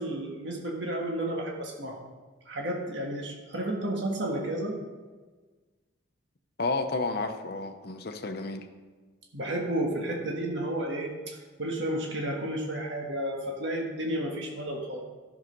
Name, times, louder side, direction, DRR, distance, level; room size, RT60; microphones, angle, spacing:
voice 1, 0.0-2.0 2.4-4.8 9.3-15.0, right 1 dB, 60° right, 0 dB, 1.6 m, -32 dB
voice 2, 6.6-8.7, left 3 dB, 50° left, 5 dB, 0.8 m, -31 dB
12.5 x 6.5 x 5.3 m, 1.4 s
head